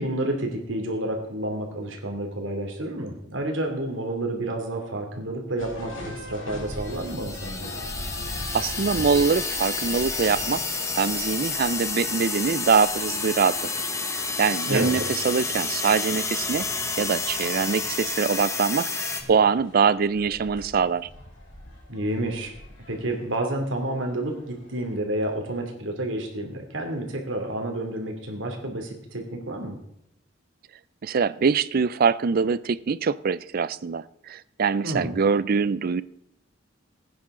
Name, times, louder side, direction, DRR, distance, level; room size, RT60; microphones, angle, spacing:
voice 1, 0.0-7.7 14.7-15.1 21.9-22.5 22.9-29.8 34.8-35.1, right 1 dB, 80° right, 3 dB, 2.6 m, -30 dB
sound 1, 5.6-25.0, left 1 dB, 90° left, 5.1 m, -42 dB
sound 2, 6.8-19.2, left 4 dB, 15° left, 1.1 m, -30 dB
voice 2, 8.5-10.7 11.0-13.6 14.1-16.7 17.0-18.9 19.3-21.1 31.0-36.0, right 5 dB, 50° right, 17 dB, 0.4 m, -23 dB
17.5 x 9.5 x 3.8 m, 0.78 s
head